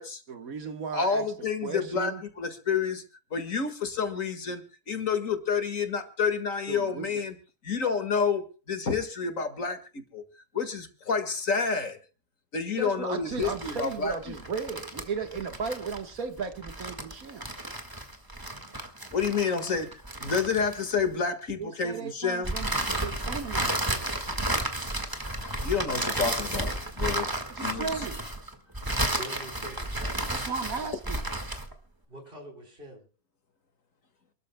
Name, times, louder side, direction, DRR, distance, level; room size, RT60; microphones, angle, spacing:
voice 1, 0.3-1.3 1.6-2.2 6.7-7.2 12.8-17.5 21.6-22.7 23.0-23.9 27.5-28.2 30.3-31.2, right 5 dB, 80° right, 1.9 m, -35 dB
voice 2, 0.9-3.0 3.3-7.4 7.6-10.2 10.5-12.0 12.5-14.1 19.1-19.9 20.2-22.6 25.6-27.3 27.6-28.0, left 5 dB, 70° left, 2.2 m, -29 dB
sound 1, 13.3-21.1 22.4-31.7, right 1 dB, 15° right, 1.7 m, -32 dB
voice 3, 29.1-31.0 32.1-33.0, equal, 40° right, 4.4 m, -46 dB
28.0 x 13.0 x 2.2 m
omnidirectional pair, 1.5 m